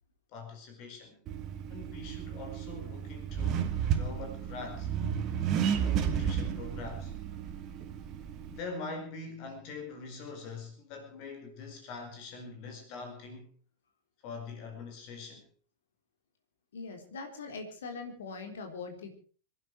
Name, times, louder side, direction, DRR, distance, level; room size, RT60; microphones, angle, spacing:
voice 1, 0.3-1.2 1.7-4.9 5.5-7.1 8.5-13.5 14.2-15.5, left 4 dB, 45° left, 4 dB, 4.8 m, -43 dB
Accelerating revving vroom, 1.3-8.6, right 8 dB, 35° right, 2.1 m, -33 dB
voice 2, 16.7-19.1, left 4 dB, 65° left, 5 dB, 3.8 m, -41 dB
26.0 x 11.0 x 4.8 m, 0.40 s
figure-of-eight pair, 90°, 0 cm